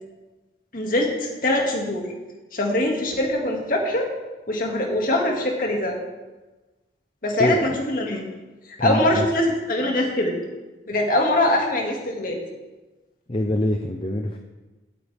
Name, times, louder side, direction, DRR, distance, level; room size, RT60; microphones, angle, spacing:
voice 1, 0.7-2.1 2.5-4.1 4.5-6.0 7.2-8.2 8.8-10.4 10.9-12.4, left 1 dB, 50° left, 0 dB, 2.2 m, -23 dB
voice 2, 7.4-7.8 8.8-9.3 13.3-14.4, left 1 dB, 30° left, 3 dB, 0.6 m, -24 dB
17.0 x 8.5 x 3.5 m, 1.2 s
head